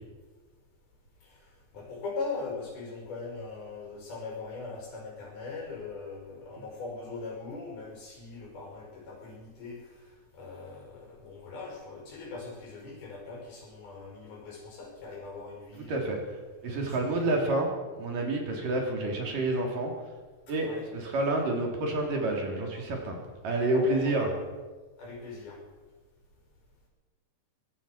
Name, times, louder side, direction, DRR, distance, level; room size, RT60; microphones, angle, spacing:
voice 1, 1.2-16.2 16.9-17.4 20.6-20.9 23.7-24.3 25.0-25.6, left 3 dB, 80° left, -1 dB, 7.6 m, -40 dB
voice 2, 15.7-16.2 16.6-20.1 20.5-23.2 23.4-24.3, right 2 dB, 60° right, 1 dB, 5.1 m, -29 dB
23.5 x 18.5 x 6.0 m, 1.3 s
omnidirectional pair, 4.3 m